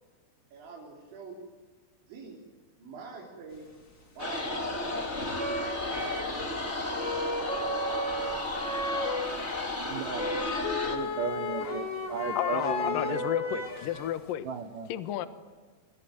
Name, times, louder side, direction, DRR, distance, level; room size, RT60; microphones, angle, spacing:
voice 1, 0.5-1.5 2.1-2.4 2.8-3.7 4.2-5.2, right 4 dB, 60° right, -3 dB, 6.2 m, -46 dB
sound 1, 4.2-4.3 5.3-6.5 6.9-9.4 9.8-9.9 10.0-14.2, left 2 dB, 60° left, 0.8 m, -33 dB
sound 2, 4.2-11.0, left 2 dB, 25° left, 1.4 m, -33 dB
voice 2, 9.8-10.4 10.8-13.7 14.4-14.9, right 6 dB, 85° right, 5 dB, 1.9 m, -36 dB
voice 3, 12.4-14.5 14.9-15.3, left 12 dB, 85° left, 10 dB, 1.9 m, -32 dB
27.5 x 23.0 x 9.4 m, 1.4 s
omnidirectional pair, 6.0 m